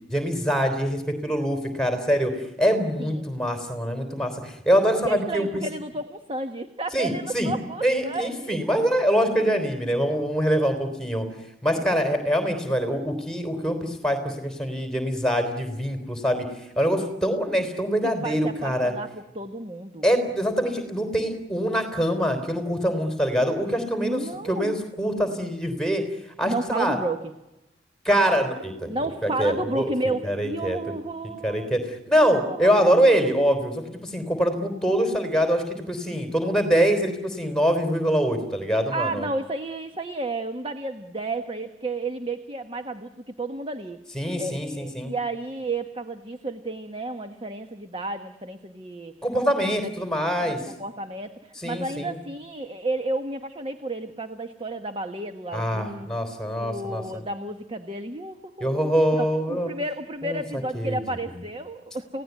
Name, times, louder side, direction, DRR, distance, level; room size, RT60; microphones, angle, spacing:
voice 1, 0.1-5.6 6.9-7.5 7.8-11.3 11.6-16.5 16.8-18.9 20.0-26.0 26.4-27.0 28.1-28.9 29.2-29.9 30.2-30.9 31.4-39.3 44.1-45.1 49.2-50.6 51.6-52.2 55.5-57.0 58.6-59.7 60.2-60.4 60.7-61.0, equal, 5° left, 7 dB, 3.6 m, -24 dB
voice 2, 5.0-8.6 11.7-12.2 18.2-20.1 24.0-24.8 26.4-27.3 28.9-31.7 32.2-33.2 38.9-49.1 49.6-49.9 50.4-56.1 56.6-62.2, right 2 dB, 30° right, 8 dB, 1.2 m, -32 dB
29.5 x 17.5 x 9.4 m, 0.96 s
head